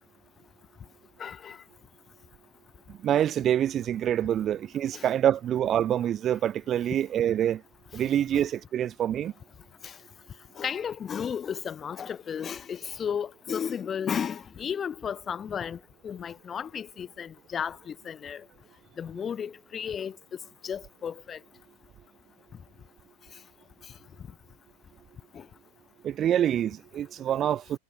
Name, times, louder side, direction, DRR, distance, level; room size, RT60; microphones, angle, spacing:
voice 1, 1.2-1.6 4.9-5.0 8.3-8.5 9.8-10.0 10.6-18.4 19.0-20.2 20.6-21.4 25.3-25.4, left 7 dB, 20° left, 0.9 m, -34 dB
voice 2, 3.0-7.6 7.9-9.3 26.0-27.8, right 10 dB, 30° right, 0.5 m, -26 dB
figure-of-eight pair, 90°, 0 cm